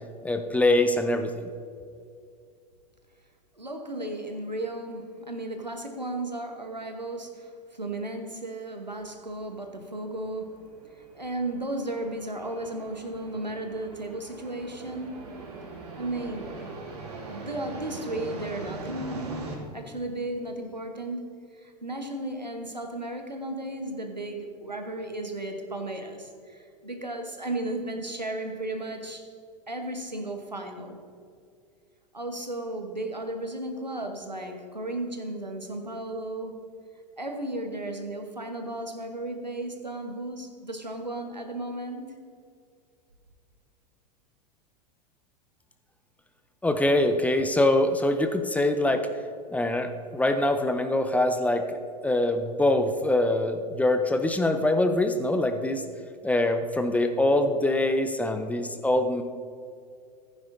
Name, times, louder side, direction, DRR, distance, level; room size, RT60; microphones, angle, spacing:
voice 1, 0.2-1.4 46.6-49.1 49.5-51.8 52.0-55.8 56.2-59.2, left 1 dB, 5° left, 7 dB, 0.6 m, -24 dB
voice 2, 3.5-10.6 10.9-15.2 16.0-16.7 17.3-19.5 19.7-21.2 21.5-29.3 29.7-31.0 32.1-36.6 37.2-42.2, right 1 dB, 90° right, 4 dB, 1.2 m, -34 dB
sound 1, 9.0-19.6, right 3 dB, 65° right, 2.8 m, -42 dB
15.0 x 9.8 x 2.7 m, 2.3 s
figure-of-eight pair, 90°, 21 cm